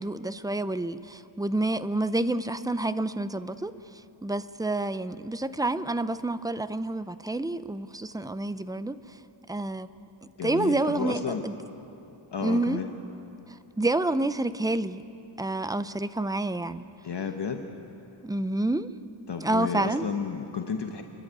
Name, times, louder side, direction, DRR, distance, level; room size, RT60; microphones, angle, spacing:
voice 1, 0.0-3.7 4.2-9.0 9.5-9.9 10.4-11.6 12.4-12.8 13.5-15.0 15.4-16.9 18.2-18.9 19.4-20.1, right 2 dB, 10° right, 12 dB, 0.4 m, -28 dB
voice 2, 10.4-11.4 12.3-12.9 17.0-17.6 19.3-21.0, left 6 dB, 55° left, 5 dB, 1.1 m, -32 dB
29.0 x 11.0 x 8.9 m, 2.9 s
wide cardioid pair, 125°, 50 cm